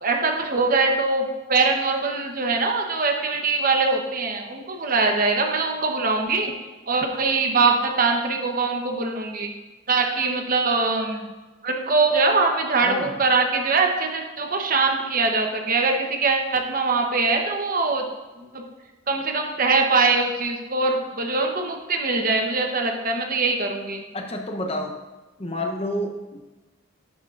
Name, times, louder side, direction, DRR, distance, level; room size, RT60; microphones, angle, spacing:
voice 1, 0.0-6.5 6.9-9.5 9.9-11.3 11.6-18.0 18.4-18.6 19.1-24.0, right 3 dB, 45° right, 3 dB, 0.9 m, -22 dB
voice 2, 12.8-13.1 24.1-24.9 25.4-26.5, left 1 dB, 30° left, 3 dB, 0.8 m, -29 dB
11.0 x 6.6 x 2.5 m, 1.2 s
head